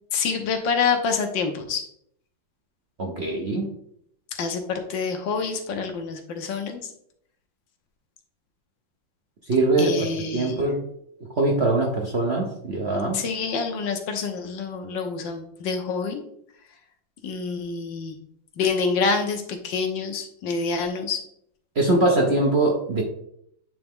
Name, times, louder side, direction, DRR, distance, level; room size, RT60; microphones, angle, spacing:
voice 1, 0.1-1.8 4.4-6.8 9.8-10.6 13.1-16.2 17.2-18.2 18.6-21.2, left 5 dB, 75° left, 5 dB, 1.5 m, -27 dB
voice 2, 3.0-3.7 9.5-10.1 10.3-10.8 11.4-13.2 21.8-23.0, right 2 dB, 50° right, -1 dB, 0.8 m, -22 dB
9.1 x 3.5 x 3.5 m, 0.71 s
omnidirectional pair, 2.1 m